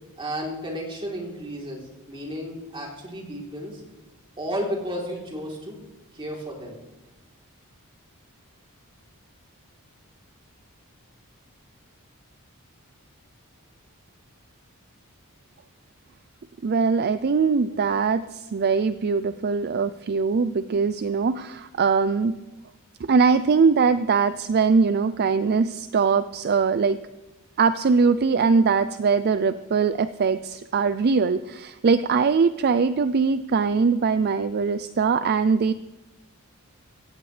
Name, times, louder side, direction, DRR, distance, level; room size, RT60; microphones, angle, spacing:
voice 1, 0.2-3.8 4.4-5.8 6.1-6.8, equal, 25° right, -2 dB, 3.5 m, -33 dB
voice 2, 16.6-22.3 23.0-27.0 27.6-35.7, right 5 dB, 45° right, 12 dB, 0.4 m, -21 dB
17.0 x 15.5 x 3.3 m, 1.0 s
head